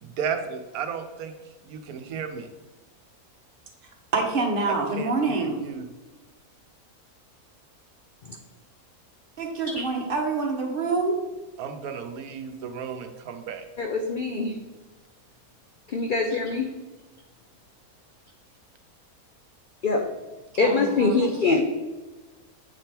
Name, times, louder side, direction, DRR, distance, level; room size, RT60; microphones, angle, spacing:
voice 1, 0.0-1.3 1.6-2.5 4.9-5.8 11.6-13.6, right 7 dB, 80° right, 6 dB, 1.2 m, -34 dB
voice 2, 4.1-5.6 9.4-11.2 20.6-21.2, right 3 dB, 40° right, 1 dB, 1.1 m, -26 dB
voice 3, 13.8-14.6 15.9-16.7 19.8-20.0 20.6-21.6, left 3 dB, 65° left, 3 dB, 0.5 m, -23 dB
8.1 x 3.4 x 4.4 m, 1.2 s
omnidirectional pair, 1.5 m